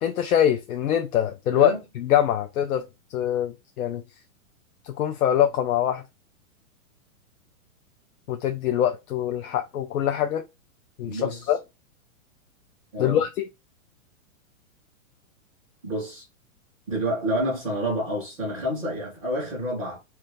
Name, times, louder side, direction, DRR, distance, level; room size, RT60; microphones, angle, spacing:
voice 1, 0.0-2.9 3.1-4.0 4.8-6.0 8.3-10.4 11.0-11.6 13.0-13.4, left 10 dB, 85° left, 0.6 m, -24 dB
voice 2, 1.5-1.8 11.1-11.5 12.9-13.2 15.8-16.2 16.9-20.0, equal, ahead, 0.4 m, -29 dB
2.8 x 2.4 x 3.2 m
hypercardioid pair, 180°, 42 cm